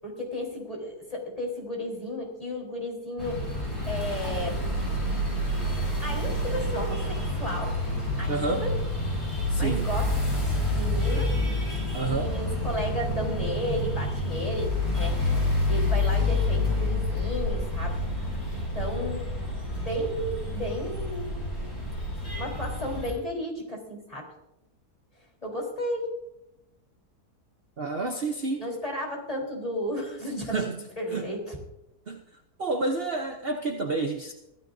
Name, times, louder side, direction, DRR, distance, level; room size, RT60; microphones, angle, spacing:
voice 1, 0.0-3.4 3.9-4.6 6.0-7.8 8.2-8.7 9.6-11.4 12.0-15.2 15.7-18.0 18.7-19.3 19.7-21.3 22.4-24.3 25.4-26.1 28.6-30.6 31.0-31.6, equal, 20° left, -1 dB, 4.2 m, -33 dB
sound 1, 3.2-23.1, left 1 dB, 70° left, 8.3 m, -28 dB
voice 2, 8.3-8.7 9.5-9.9 11.9-12.3 27.8-28.6 30.5-30.8 31.1-31.2 32.1-32.2 32.6-34.3, right 3 dB, 45° right, 4 dB, 1.0 m, -29 dB
24.5 x 15.5 x 2.7 m, 0.87 s
omnidirectional pair, 1.7 m